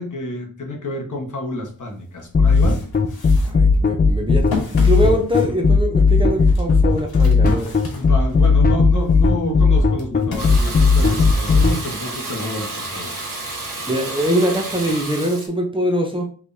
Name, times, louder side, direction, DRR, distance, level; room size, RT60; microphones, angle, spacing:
voice 1, 0.0-2.8 7.9-13.1, left 2 dB, 55° left, 1 dB, 1.2 m, -28 dB
sound 1, 1.7-1.8 2.2-8.6 9.0-11.6, left 5 dB, 85° left, 1.2 m, -34 dB
sound 2, 2.3-11.8, left 4 dB, 25° left, 0.4 m, -15 dB
voice 2, 3.4-7.7 13.6-16.3, equal, 15° right, 1 dB, 0.7 m, -23 dB
Water tap faucet / Bathtub (filling or washing), 10.4-15.5, right 2 dB, 60° right, 1.4 m, -31 dB
4.6 x 3.2 x 2.7 m, 0.42 s
wide cardioid pair, 115°, 36 cm